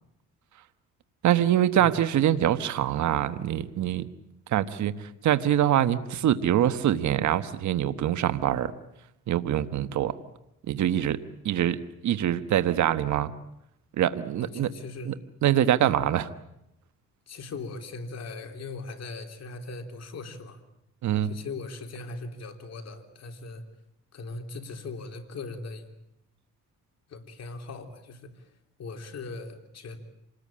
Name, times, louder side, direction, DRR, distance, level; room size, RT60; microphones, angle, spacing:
voice 1, 1.2-4.1 4.5-4.9 5.2-8.7 9.3-10.1 10.7-11.2 11.4-13.3 14.0-14.7 15.0-15.1 15.4-16.3 21.0-21.3, right 11 dB, 70° right, 12 dB, 1.3 m, -24 dB
voice 2, 14.4-15.1 17.3-20.6 21.2-23.6 24.1-25.8 27.1-28.4 28.8-30.0, left 3 dB, 60° left, 5 dB, 3.5 m, -39 dB
27.0 x 19.5 x 8.7 m, 0.83 s
cardioid pair, 90°, 30 cm